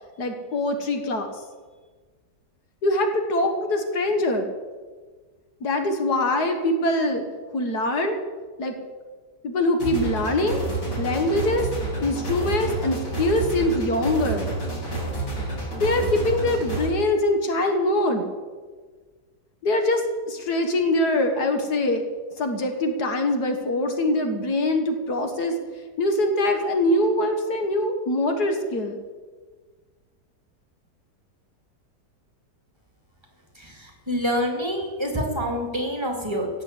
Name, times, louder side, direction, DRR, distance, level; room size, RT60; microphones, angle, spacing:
voice 1, 0.2-1.3 2.8-4.5 5.6-7.3 7.5-8.2 8.6-8.8 9.4-10.6 11.0-11.7 12.0-14.5 15.8-18.3 19.6-22.1 22.4-25.6 26.0-29.0, left 1 dB, 70° left, 5 dB, 1.9 m, -23 dB
sound 1, 9.8-16.9, right 2 dB, 90° left, 4.7 m, -29 dB
voice 2, 33.5-36.5, equal, 15° right, 1 dB, 2.7 m, -27 dB
17.0 x 7.4 x 8.2 m, 1.4 s
omnidirectional pair, 1.8 m